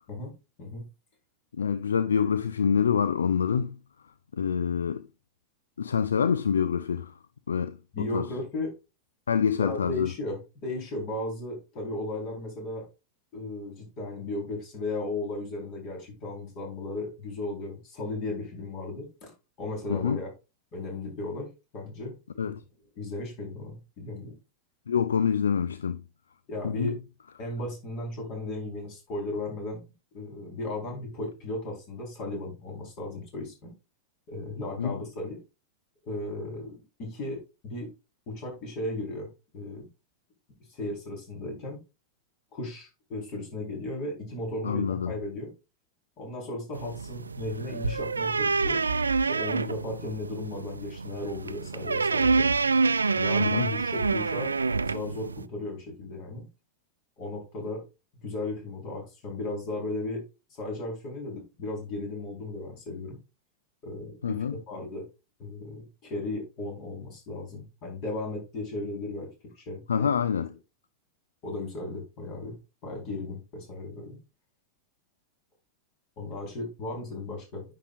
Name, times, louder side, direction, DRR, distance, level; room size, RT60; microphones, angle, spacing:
voice 1, 1.6-3.8 4.3-5.1 5.8-7.1 7.5-8.3 9.3-10.1 19.9-20.2 22.4-22.6 24.9-26.0 26.6-27.0 34.8-35.0 44.6-45.2 53.4-53.7 64.2-64.6 69.9-70.5, left 7 dB, 70° left, 0.3 m, -26 dB
voice 2, 7.9-8.7 9.6-12.9 13.3-19.3 19.6-20.3 20.7-22.1 22.4-22.6 23.0-24.3 26.5-26.9 27.4-29.8 30.1-33.7 34.3-35.4 36.0-37.9 38.3-39.3 39.5-39.9 40.7-41.8 42.5-45.5 46.2-48.8 49.2-52.5 53.1-54.5 54.8-56.5 57.2-57.8 58.2-60.2 60.5-63.2 63.8-65.0 65.4-69.3 69.6-70.1 71.4-74.2 76.2-77.7, left 2 dB, 40° left, 4.3 m, -35 dB
sound 1, 46.7-55.4, right 4 dB, 75° right, 0.3 m, -27 dB
9.8 x 6.5 x 2.5 m
figure-of-eight pair, 90°, 0 cm